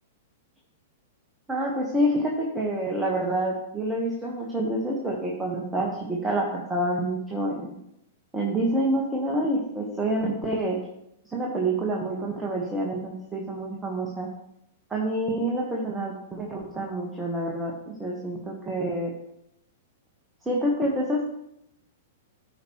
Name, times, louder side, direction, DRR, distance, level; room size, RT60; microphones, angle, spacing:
voice 1, 1.5-7.8 8.3-10.8 11.3-14.3 14.9-17.7 18.0-19.1 20.4-21.2, right 1 dB, 10° right, -2 dB, 1.5 m, -27 dB
13.5 x 5.2 x 3.1 m, 0.79 s
figure-of-eight pair, 105°, 0 cm